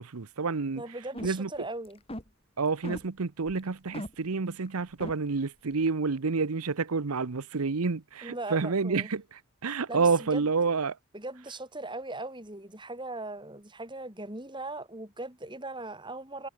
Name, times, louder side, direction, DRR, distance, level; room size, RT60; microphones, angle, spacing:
voice 1, 0.0-0.8 1.2-1.5 2.6-11.0, right 4 dB, 85° right, 0.8 m, -29 dB
voice 2, 0.8-2.0 8.2-9.1 9.9-10.5 11.1-16.5, right 2 dB, 20° right, 5.0 m, -39 dB
sound 1, 1.1-1.6 1.8-2.3 2.8-3.1 3.5-3.7 3.9-4.1 4.6-4.7 5.0-5.1, left 1 dB, 25° left, 5.5 m, -38 dB
head